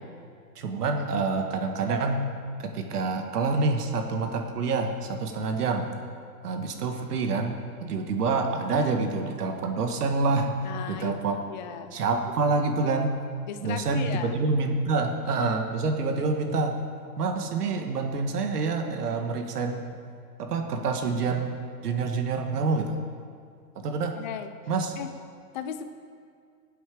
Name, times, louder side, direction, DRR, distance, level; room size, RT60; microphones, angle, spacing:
voice 1, 0.5-2.2 2.6-5.9 6.4-7.6 7.8-10.6 10.9-11.4 11.9-13.1 13.6-16.8 17.2-19.8 20.4-21.6 21.8-23.0 23.8-24.2 24.7-25.0, right 4 dB, 70° right, 5 dB, 1.7 m, -27 dB
voice 2, 10.6-11.9 13.5-14.4 24.2-24.5 25.0-25.1 25.5-25.8, left 8 dB, 30° left, 8 dB, 0.5 m, -36 dB
18.0 x 7.9 x 5.0 m, 2.2 s
hypercardioid pair, 145°, 49 cm